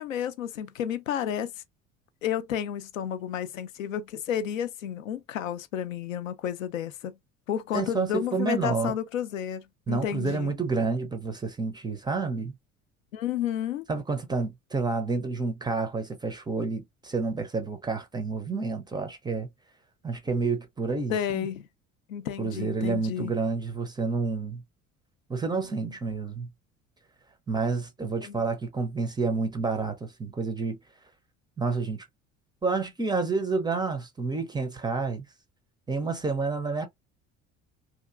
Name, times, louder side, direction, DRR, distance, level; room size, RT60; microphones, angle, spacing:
voice 1, 0.0-1.5 2.2-7.2 7.5-10.5 13.1-13.9 21.1-21.7 22.1-23.3 28.2-28.4, left 9 dB, 75° left, 0.5 m, -31 dB
voice 2, 7.7-8.9 9.9-12.5 13.9-19.5 20.0-21.5 22.4-24.6 25.3-26.5 27.5-30.8 31.6-32.1 32.6-35.2 35.9-36.9, right 4 dB, 10° right, 0.4 m, -29 dB
2.8 x 2.4 x 2.3 m
figure-of-eight pair, 60°, 40 cm